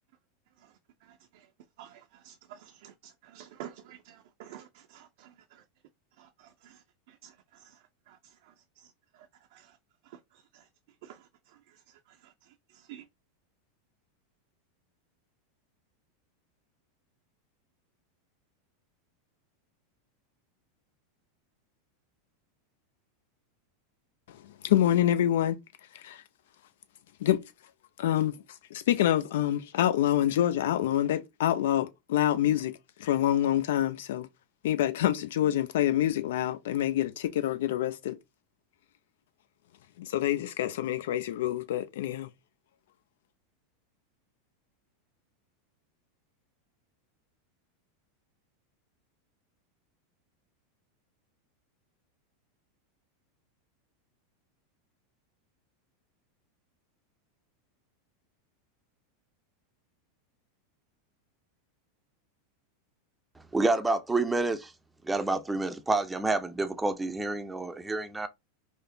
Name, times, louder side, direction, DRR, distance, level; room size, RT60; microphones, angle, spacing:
voice 1, 1.0-1.5 1.8-5.6 6.2-9.8 10.0-10.7 11.0-13.1, right 11 dB, 60° right, 0.5 m, -52 dB
voice 2, 24.6-25.6 25.9-26.2 27.2-27.4 28.0-28.3 28.7-32.7 33.0-34.3 34.6-38.2 40.0-42.3, left 12 dB, 65° left, 0.5 m, -26 dB
voice 3, 63.5-64.7 65.0-68.3, right 2 dB, 10° right, 0.5 m, -28 dB
4.8 x 2.0 x 2.7 m
hypercardioid pair, 90°, 0 cm